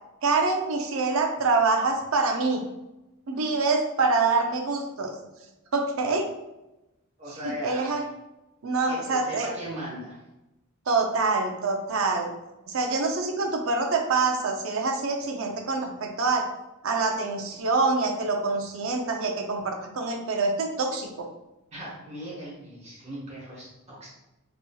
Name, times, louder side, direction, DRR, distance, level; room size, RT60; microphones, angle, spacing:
voice 1, 0.2-2.7 3.3-5.1 5.7-6.3 7.4-8.0 8.6-9.5 10.9-12.3 12.7-16.4 16.8-21.3, right 3 dB, 70° right, 3 dB, 0.5 m, -25 dB
voice 2, 7.2-8.1 8.9-10.2 21.7-24.1, equal, 30° right, -6 dB, 1.2 m, -38 dB
4.1 x 2.9 x 2.3 m, 0.96 s
head